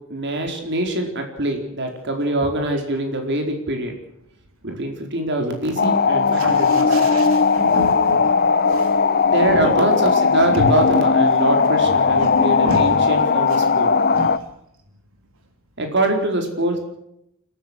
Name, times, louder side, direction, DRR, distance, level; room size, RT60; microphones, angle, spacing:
voice 1, 0.1-3.9 4.6-7.1 9.0-13.9 15.8-16.8, right 1 dB, 55° right, 3 dB, 4.5 m, -24 dB
sound 1, 5.8-14.4, left 5 dB, 45° left, 0.8 m, -17 dB
voice 2, 6.3-8.3 8.7-8.9 9.4-9.8 10.5-10.7 12.2-13.0 14.1-14.3, equal, 85° right, 4 dB, 3.2 m, -29 dB
29.0 x 14.0 x 6.3 m, 0.78 s
head